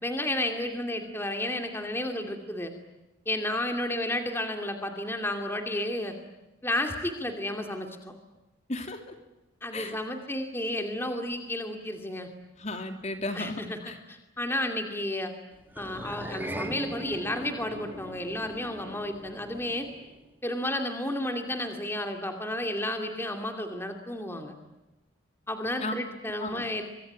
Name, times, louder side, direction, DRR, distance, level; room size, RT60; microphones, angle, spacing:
voice 1, 0.0-2.7 3.3-6.2 6.6-8.1 9.6-12.3 13.3-15.3 15.8-19.9 20.4-24.5 25.5-26.8, left 1 dB, 10° left, 5 dB, 2.5 m, -32 dB
voice 2, 8.7-9.0 9.7-10.0 12.6-14.0 25.8-25.9 26.4-26.6, left 2 dB, 35° left, 6 dB, 2.9 m, -34 dB
sound 1, 15.7-20.3, right 1 dB, 10° right, 2.4 m, -40 dB
25.5 x 24.0 x 9.5 m, 1.0 s
head